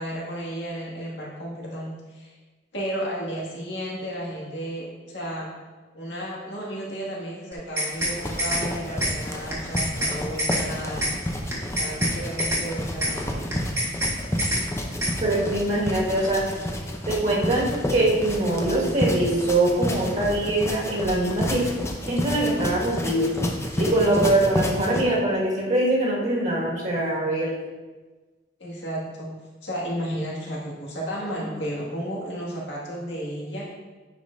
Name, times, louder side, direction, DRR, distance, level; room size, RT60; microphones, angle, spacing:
voice 1, 0.0-2.3 2.7-5.5 5.9-11.1 11.8-13.4 28.6-29.3 29.6-33.6, equal, 70° left, -5 dB, 2.1 m, -33 dB
sound 1, 7.5-8.1 8.4-8.6 9.0-9.1 9.5-10.1 10.4-10.6 11.0-11.1 11.5-12.1 12.4-12.6 13.0-13.1 13.5-14.1 14.4-14.6 15.0-15.1, equal, 15° right, 1.7 m, -25 dB
sound 2, 7.8-25.0, left 1 dB, 15° left, 0.6 m, -30 dB
voice 2, 15.2-16.4 17.1-21.6 22.1-23.3 23.8-27.5, right 1 dB, 40° right, -5 dB, 1.8 m, -23 dB
9.4 x 5.4 x 2.7 m, 1.3 s
head